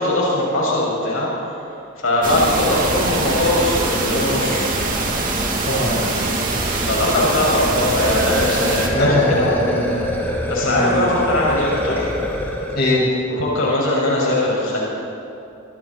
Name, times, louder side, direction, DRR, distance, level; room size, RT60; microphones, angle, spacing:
voice 1, 0.0-1.5 2.0-4.7 6.9-9.5 10.5-12.1 13.4-14.8, left 1 dB, 75° left, -5 dB, 6.7 m, -20 dB
sound 1, 2.2-8.9, right 2 dB, 40° right, 3.4 m, -23 dB
voice 2, 5.6-6.1 8.9-9.8 10.6-10.9 12.7-13.1, left 1 dB, 55° left, -5 dB, 6.9 m, -20 dB
sound 2, 7.9-12.9, left 1 dB, 10° left, 3.5 m, -25 dB
26.0 x 25.0 x 4.6 m, 2.8 s
head